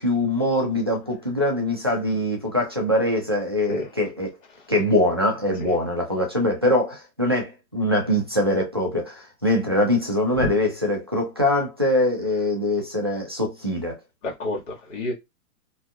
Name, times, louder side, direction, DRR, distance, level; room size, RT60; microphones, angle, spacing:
voice 1, 0.0-4.3 4.7-14.0, left 1 dB, 20° right, 0.3 m, -23 dB
voice 2, 14.2-15.1, left 2 dB, 60° left, 1.8 m, -29 dB
4.6 x 2.7 x 2.3 m
hypercardioid pair, 165°, 42 cm